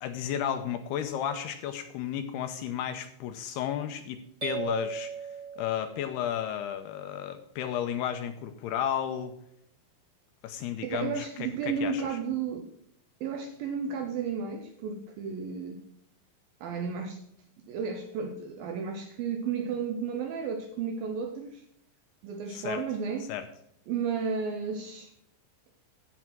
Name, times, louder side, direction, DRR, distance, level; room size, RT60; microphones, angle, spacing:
voice 1, 0.0-5.1 5.6-9.3 10.4-12.2 22.5-22.8 23.3-23.5, left 9 dB, 75° left, 2.5 m, -33 dB
sound 1, 4.4-6.3, right 6 dB, 25° right, 1.8 m, -37 dB
voice 2, 10.8-12.7 13.2-15.8 16.6-17.2 17.7-21.6 22.2-23.3 23.9-25.1, right 6 dB, 75° right, 2.2 m, -33 dB
15.0 x 6.3 x 6.0 m
omnidirectional pair, 5.2 m